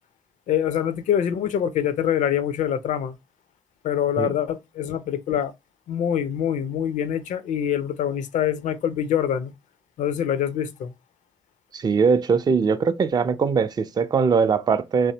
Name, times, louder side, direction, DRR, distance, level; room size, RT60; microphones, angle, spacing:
voice 1, 0.5-3.2 3.8-5.5 5.9-9.5 10.0-10.9, left 9 dB, 60° left, 0.4 m, -25 dB
voice 2, 11.7-15.1, right 5 dB, 30° right, 0.4 m, -21 dB
2.6 x 2.0 x 2.7 m
hypercardioid pair, 40°, 14 cm